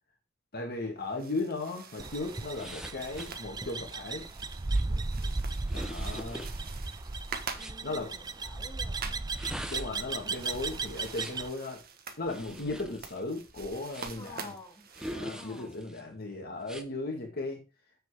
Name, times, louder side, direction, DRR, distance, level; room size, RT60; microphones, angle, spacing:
voice 1, 0.5-4.2 5.7-6.5 7.8-8.2 9.7-11.8 12.2-14.5 15.0-17.6, left 2 dB, 50° left, 2 dB, 2.1 m, -36 dB
sound 1, 1.0-15.8, right 5 dB, 50° right, 1.4 m, -47 dB
sound 2, 2.0-11.5, right 3 dB, 20° right, 0.5 m, -35 dB
sound 3, 2.5-7.8 9.2-11.5 12.2-14.3 14.9-16.0 16.6-16.9, equal, 5° right, 1.0 m, -44 dB
voice 2, 7.6-9.2 14.2-14.9 15.3-15.8, left 2 dB, 20° left, 0 dB, 2.8 m, -49 dB
7.7 x 6.8 x 5.0 m, 0.30 s
head